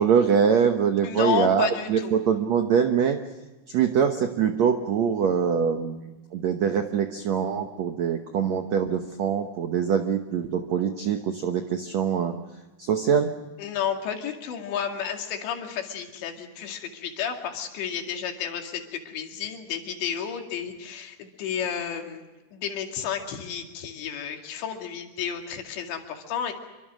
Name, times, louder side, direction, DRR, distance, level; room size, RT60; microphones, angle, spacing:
voice 1, 0.0-3.2 3.7-6.0 6.3-12.4 12.9-13.3, right 7 dB, 85° right, 6 dB, 1.5 m, -23 dB
voice 2, 1.0-2.2 13.6-22.2 22.5-26.5, left 8 dB, 85° left, 3 dB, 4.5 m, -31 dB
26.5 x 24.0 x 6.3 m, 1.1 s
omnidirectional pair, 5.0 m